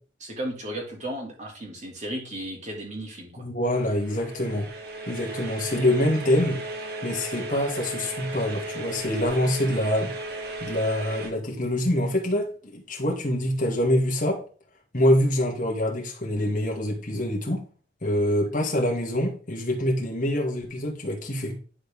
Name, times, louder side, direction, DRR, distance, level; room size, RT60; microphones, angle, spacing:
voice 1, 0.2-3.5, right 1 dB, 40° right, 2.6 m, -35 dB
voice 2, 3.4-4.7 5.1-6.6 7.0-10.1 10.6-14.4 14.9-17.6 18.0-21.6, left 1 dB, 45° left, 2.3 m, -25 dB
sound 1, 3.6-11.3, right 2 dB, 60° right, 1.9 m, -36 dB
11.0 x 4.6 x 3.6 m
head